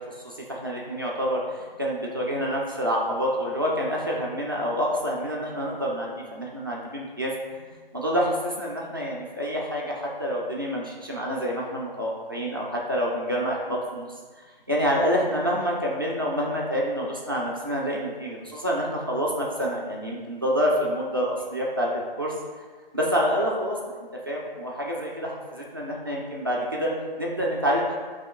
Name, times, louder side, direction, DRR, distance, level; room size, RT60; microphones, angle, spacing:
voice 1, 0.0-7.3 7.9-14.1 14.7-21.9 22.2-22.3 22.9-24.0 24.3-26.9 27.2-28.0, equal, 25° right, -4 dB, 0.3 m, -27 dB
7.3 x 2.9 x 2.3 m, 1.5 s
figure-of-eight pair, 155°, 29 cm